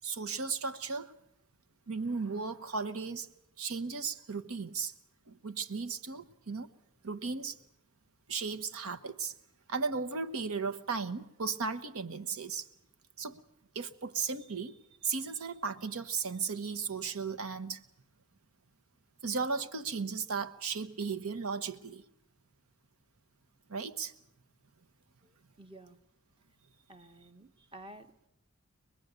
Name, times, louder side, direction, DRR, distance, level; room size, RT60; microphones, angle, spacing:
voice 1, 0.0-1.1 1.9-3.3 3.6-4.9 5.3-6.7 7.0-7.6 8.3-9.3 9.7-12.7 13.2-13.4 13.7-17.8 19.2-22.0 23.7-24.1, right 5 dB, 80° right, 10 dB, 1.0 m, -35 dB
voice 2, 25.2-26.0 26.9-28.3, right 1 dB, 25° right, 8 dB, 1.1 m, -52 dB
24.0 x 21.0 x 8.0 m, 0.82 s
head